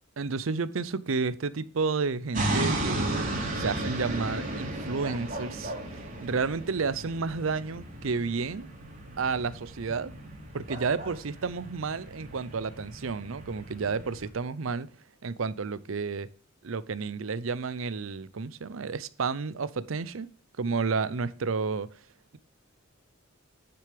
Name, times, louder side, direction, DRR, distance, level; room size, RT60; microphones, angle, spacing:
voice 1, 0.2-3.3 3.6-8.7 9.2-10.1 10.5-14.9 15.2-16.3 16.6-20.3 20.6-21.9, right 4 dB, 75° right, 0.6 m, -31 dB
sound 1, 2.3-14.3, right 1 dB, 40° right, 3.0 m, -35 dB
9.8 x 6.8 x 3.4 m
head